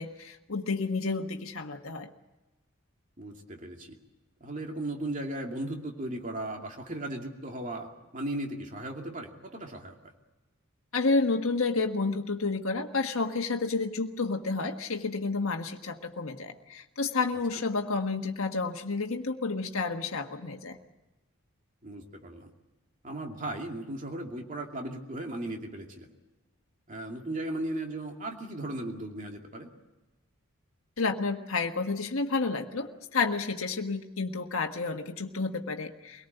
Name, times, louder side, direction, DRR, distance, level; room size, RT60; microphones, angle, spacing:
voice 1, 0.0-2.1 10.9-20.8 31.0-36.3, left 3 dB, 75° left, 4 dB, 1.5 m, -30 dB
voice 2, 3.2-4.0 4.4-10.0 21.8-22.5 23.0-26.1 26.9-29.7, right 1 dB, 35° right, 2 dB, 2.5 m, -36 dB
23.5 x 18.5 x 8.0 m, 1.1 s
head